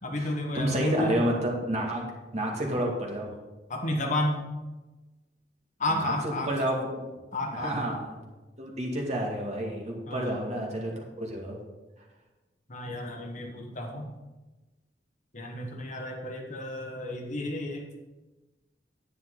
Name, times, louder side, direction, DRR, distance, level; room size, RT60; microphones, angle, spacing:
voice 1, 0.0-1.2 3.7-4.4 5.8-6.5 7.3-7.8 10.1-10.5 12.7-14.1 15.3-18.0, left 1 dB, 45° left, 2 dB, 1.4 m, -32 dB
voice 2, 0.5-2.0 2.3-3.3 5.9-7.1 7.6-8.0 8.6-11.6, equal, 40° right, 0 dB, 2.1 m, -29 dB
10.0 x 9.2 x 3.9 m, 1.1 s
head